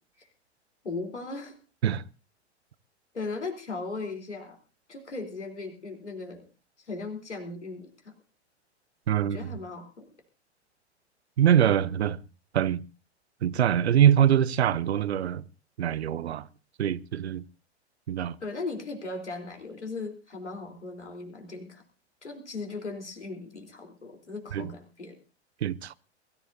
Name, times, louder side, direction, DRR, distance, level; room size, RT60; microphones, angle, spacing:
voice 1, 0.8-1.6 3.1-4.6 4.9-6.4 6.8-8.1 9.2-10.1 18.4-21.8 22.2-25.2, left 3 dB, 80° left, 3.8 m, -37 dB
voice 2, 9.1-9.4 11.4-12.2 12.5-12.8 13.4-15.4 15.8-16.4 16.8-17.4 18.1-18.4 24.5-24.7 25.6-26.0, right 10 dB, 65° right, 0.7 m, -23 dB
22.5 x 14.5 x 2.7 m
figure-of-eight pair, 95°, 34 cm